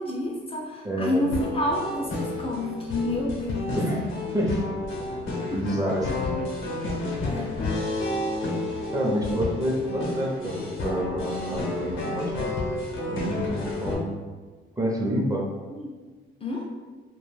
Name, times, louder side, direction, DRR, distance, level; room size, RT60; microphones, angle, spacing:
voice 1, 0.0-4.2 5.5-5.6 7.2-7.6 15.7-15.9 16.4-16.6, left 1 dB, 30° left, -2 dB, 0.4 m, -29 dB
voice 2, 0.8-1.2 3.8-4.0 4.3-4.6 5.4-6.7 8.9-12.5 13.1-14.1 14.8-15.5, equal, 15° right, -2 dB, 0.6 m, -28 dB
sound 1, 1.3-14.0, left 2 dB, 80° left, 0.7 m, -31 dB
2.3 x 2.2 x 3.1 m, 1.4 s
cardioid pair, 90°, 20 cm